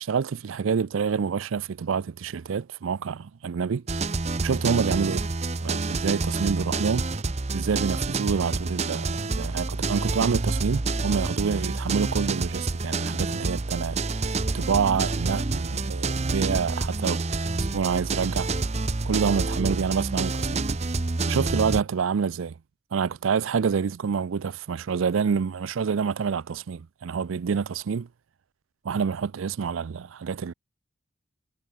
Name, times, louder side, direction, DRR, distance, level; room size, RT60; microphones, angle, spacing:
voice 1, 0.0-3.8 4.4-5.3 5.6-7.1 7.5-14.0 14.5-17.2 17.5-18.5 19.0-20.7 21.2-22.5 22.9-28.1 28.8-30.5, right 6 dB, 85° right, 0.4 m, -27 dB
sound 1, 3.9-21.8, right 3 dB, 35° right, 0.7 m, -28 dB
head